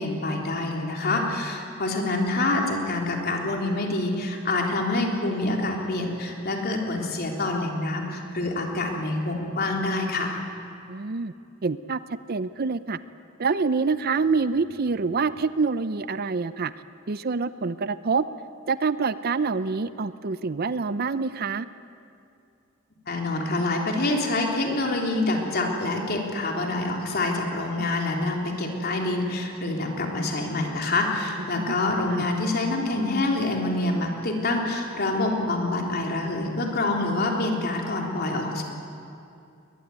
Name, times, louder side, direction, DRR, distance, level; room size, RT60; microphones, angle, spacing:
voice 1, 0.0-10.4 23.1-38.6, left 2 dB, 50° left, 1 dB, 3.5 m, -26 dB
voice 2, 10.9-11.3 11.6-13.0 13.4-16.7 17.1-18.2 18.7-21.7 27.8-27.9 31.6-31.7 32.1-32.3, right 4 dB, 50° right, 14 dB, 0.6 m, -26 dB
21.0 x 21.0 x 9.4 m, 2.6 s
head